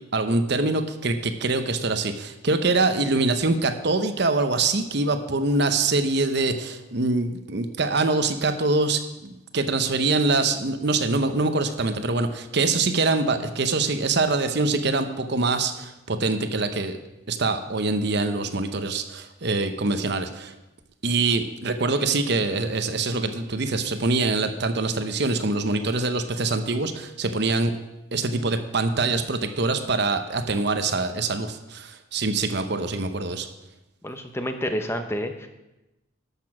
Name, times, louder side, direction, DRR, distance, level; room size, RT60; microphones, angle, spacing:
voice 1, 0.1-17.0 17.3-20.5 21.0-27.7 28.1-33.5, right 3 dB, 55° right, 8 dB, 0.8 m, -24 dB
voice 2, 34.0-35.5, equal, 10° left, 6 dB, 0.7 m, -29 dB
12.0 x 6.8 x 6.0 m, 0.97 s
head